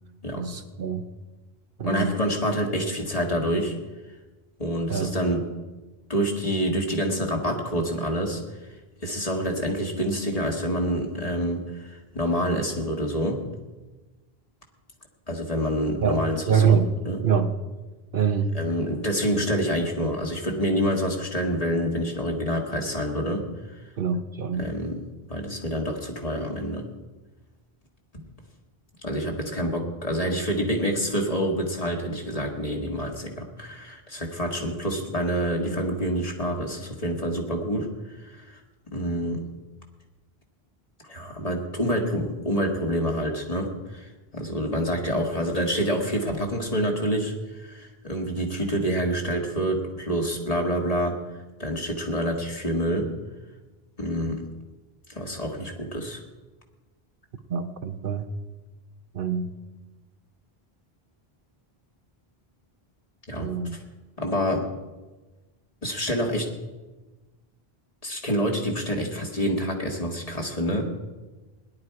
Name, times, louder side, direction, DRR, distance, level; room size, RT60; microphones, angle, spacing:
voice 1, 0.3-1.0 1.8-2.2 4.9-5.2 16.0-16.9 17.2-17.5 18.1-18.6 24.0-24.7 57.5-58.3 59.1-59.5 63.4-63.8, right 6 dB, 60° right, 8 dB, 1.0 m, -25 dB
voice 2, 1.8-3.8 4.6-5.4 6.1-8.4 9.0-13.4 15.3-17.2 18.5-23.5 24.6-25.0 25.3-26.9 29.0-37.9 38.2-38.6 38.9-39.4 41.0-51.2 51.6-53.1 54.0-54.4 55.1-56.2 63.3-63.5 64.2-64.7 65.8-66.5 68.0-70.9, equal, 35° left, 1 dB, 2.0 m, -27 dB
17.5 x 11.0 x 4.7 m, 1.2 s
omnidirectional pair, 1.0 m